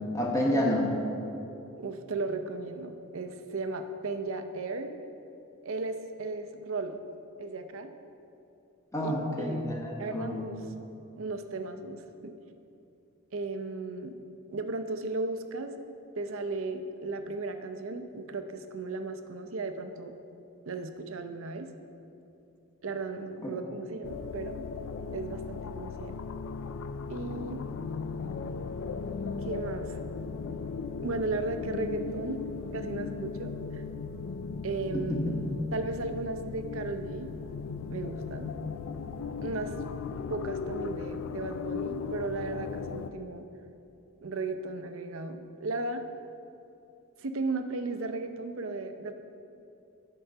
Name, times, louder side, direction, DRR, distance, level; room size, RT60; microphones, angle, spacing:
voice 1, 0.1-0.9 8.9-10.5 23.4-23.5 35.1-35.2, left 1 dB, 15° left, -1 dB, 1.0 m, -29 dB
voice 2, 1.8-4.9 5.6-7.0 7.4-7.9 9.0-9.6 10.0-10.6 11.1-12.3 13.3-14.2 14.5-15.8 16.2-20.1 20.7-21.7 22.8-24.7 25.1-26.1 27.1-27.7 29.4-30.0 30.5-30.8 31.0-32.4 32.7-33.8 34.6-35.2 35.7-37.3 37.9-38.5 39.4-39.7 40.3-43.5 44.2-46.0 47.2-49.1, right 3 dB, 65° right, 8 dB, 0.6 m, -35 dB
sound 1, 24.0-43.1, left 5 dB, 65° left, 0.3 m, -37 dB
10.0 x 3.8 x 6.6 m, 2.8 s
head